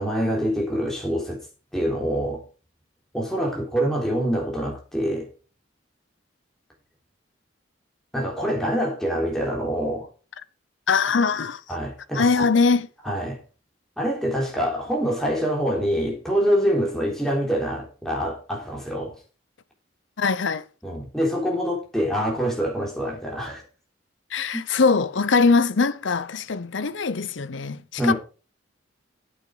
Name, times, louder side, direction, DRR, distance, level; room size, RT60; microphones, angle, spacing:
voice 1, 0.0-1.4 1.7-2.4 3.1-5.3 8.1-10.1 11.7-12.5 13.0-13.4 14.0-19.2 20.8-23.6 24.5-24.6 28.0-28.1, equal, ahead, 3.6 m, -25 dB
voice 2, 10.9-11.6 12.1-12.9 20.2-20.6 24.3-28.1, left 4 dB, 75° left, 0.7 m, -21 dB
8.8 x 8.4 x 4.8 m
head